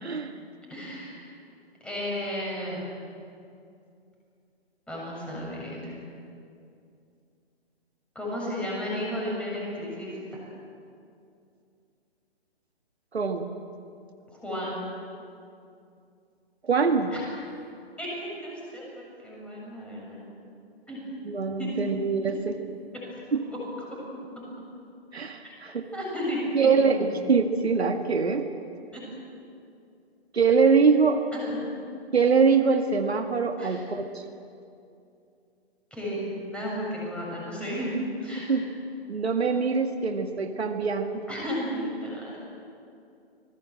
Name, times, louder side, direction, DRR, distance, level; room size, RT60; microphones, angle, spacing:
voice 1, 0.0-0.3 13.1-13.5 16.6-17.1 21.2-22.6 23.3-23.4 25.1-25.8 26.5-28.4 30.3-31.2 32.1-34.2 38.5-38.6 39.1-41.2, right 5 dB, 75° right, 5 dB, 1.9 m, -23 dB
voice 2, 0.7-1.3 1.8-2.9 4.9-6.0 8.1-10.4 14.4-14.9 17.1-17.2 18.0-20.2 20.9-21.0 21.6-21.8 23.3-23.6 25.4-25.5 25.9-27.1 28.9-29.0 31.3-31.6 33.6-33.8 35.9-36.2 36.5-37.9 38.2-38.6 41.3-42.4, equal, 5° left, -5 dB, 7.2 m, -33 dB
26.0 x 20.0 x 7.8 m, 2.5 s
figure-of-eight pair, 135°, 32 cm